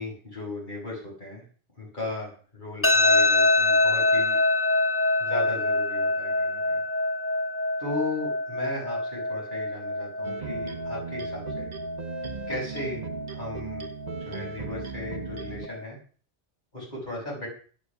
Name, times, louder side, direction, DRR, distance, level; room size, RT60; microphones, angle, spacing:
voice 1, 0.0-1.4 1.8-4.3 5.2-6.8 7.8-11.7 12.5-13.9 14.2-16.0 16.7-17.5, left 2 dB, 45° left, -4 dB, 6.4 m, -36 dB
sound 1, 2.8-15.8, left 2 dB, 15° left, 0.6 m, -26 dB
sound 2, 10.2-15.7, right 5 dB, 40° right, 1.0 m, -37 dB
12.5 x 10.5 x 6.1 m, 0.42 s
omnidirectional pair, 1.2 m